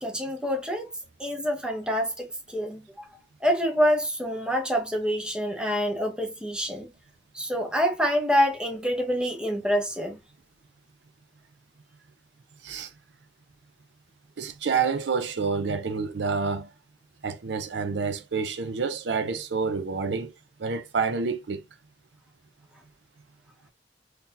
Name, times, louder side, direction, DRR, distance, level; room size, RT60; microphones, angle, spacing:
voice 1, 0.0-0.9 1.2-3.1 3.4-6.9 7.3-10.2, equal, 5° right, 0.8 m, -26 dB
voice 2, 14.4-16.7 17.2-20.3 20.6-21.6, right 5 dB, 75° right, 0.5 m, -28 dB
3.8 x 2.9 x 2.6 m
head